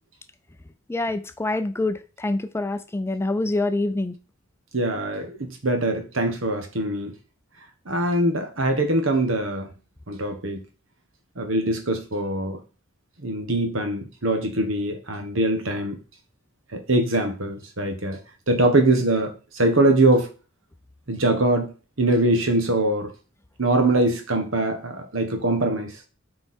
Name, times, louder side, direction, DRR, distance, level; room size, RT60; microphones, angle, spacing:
voice 1, 0.9-4.1, left 2 dB, 15° left, 0.4 m, -26 dB
voice 2, 4.7-7.1 7.9-9.7 10.1-10.6 11.4-12.6 13.2-16.0 16.7-18.2 18.5-20.3 21.1-21.7 22.0-23.1 23.6-25.9, right 2 dB, 75° right, 1.5 m, -22 dB
8.0 x 4.7 x 4.4 m
head